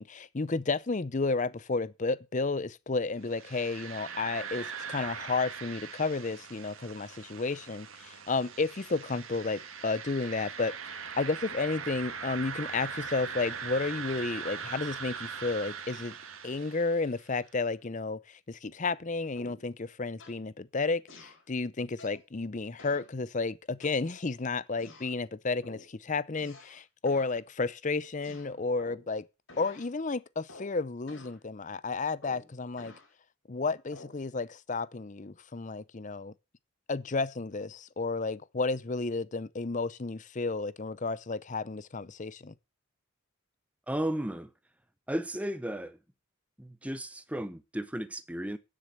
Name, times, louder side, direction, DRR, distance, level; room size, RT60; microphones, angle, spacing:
voice 1, 0.0-10.7 11.2-16.1 16.4-29.2 29.6-32.9 33.5-36.3 36.9-42.5, left 3 dB, 35° left, 0.6 m, -32 dB
sound 1, 3.2-17.2, right 6 dB, 75° right, 1.9 m, -41 dB
sound 2, 19.4-19.7 20.2-20.5 21.1-21.4 22.0-22.3 22.8-23.1 23.8-24.3 24.8-25.2 25.6-25.9 26.3-26.8 27.1-27.4 28.2-29.1 29.5-29.9 30.5-30.8 31.1-31.4 32.2-33.1 33.9-34.2, left 2 dB, 65° left, 3.7 m, -51 dB
voice 2, 43.9-44.5 45.1-46.0 46.6-48.6, right 1 dB, 5° right, 0.8 m, -34 dB
9.9 x 7.6 x 6.6 m
head